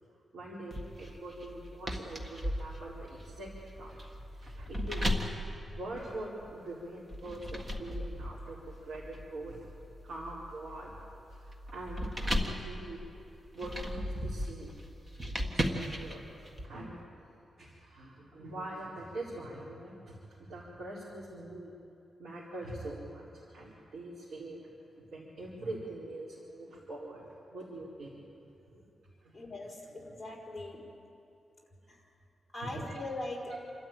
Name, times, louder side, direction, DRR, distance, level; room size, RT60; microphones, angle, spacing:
voice 1, 0.0-4.0 4.4-5.4 5.7-9.6 10.0-10.9 11.3-12.1 12.4-13.0 13.5-14.7 15.2-17.2 17.6-21.7 22.2-24.7 25.0-28.2 28.7-28.8 29.2-29.3 32.6-33.0 33.5-33.6, right 1 dB, 85° right, -7 dB, 4.3 m, -44 dB
sound 1, 0.7-6.5 7.1-16.6, equal, 20° right, 1.7 m, -37 dB
voice 2, 29.3-30.8 31.9-32.0 32.5-33.6, left 2 dB, 5° left, -4 dB, 4.5 m, -41 dB
28.0 x 13.0 x 9.1 m, 2.6 s
wide cardioid pair, 165°, 0 cm